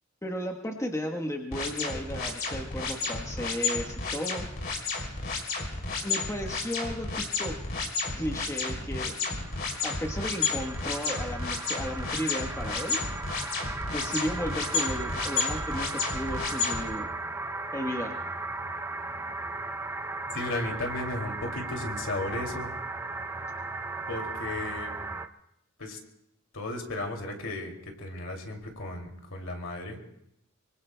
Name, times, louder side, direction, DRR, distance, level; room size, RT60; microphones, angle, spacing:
voice 1, 0.2-4.5 6.0-7.6 8.2-9.1 9.8-13.1 13.9-17.1 17.7-18.2, equal, 15° left, 1 dB, 1.1 m, -34 dB
sound 1, 1.5-16.8, left 4 dB, 50° left, 2.9 m, -31 dB
sound 2, 9.3-25.3, right 3 dB, 15° right, 0.5 m, -36 dB
voice 2, 20.3-22.7 24.1-25.0 25.8-26.0 26.5-30.0, left 2 dB, 70° left, 2 dB, 2.5 m, -35 dB
25.0 x 24.0 x 2.2 m, 0.81 s
head